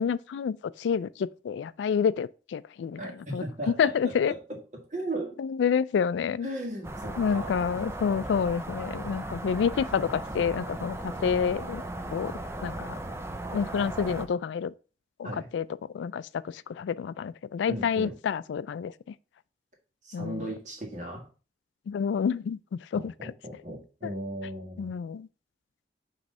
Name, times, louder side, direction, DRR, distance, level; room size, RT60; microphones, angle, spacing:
voice 1, 0.0-3.0 3.3-4.3 5.4-6.5 7.2-11.8 12.1-12.3 12.6-13.0 13.5-14.7 15.2-15.7 15.9-19.1 20.1-20.5 21.9-23.3 24.8-25.3, left 7 dB, 80° left, 0.3 m, -28 dB
voice 2, 3.0-5.4 6.4-7.6 15.2-15.5 17.7-18.1 20.0-21.3 22.9-24.9, right 1 dB, 40° right, 1.7 m, -37 dB
sound 1, 6.8-14.3, right 1 dB, 15° right, 0.4 m, -37 dB
6.1 x 3.1 x 5.3 m
head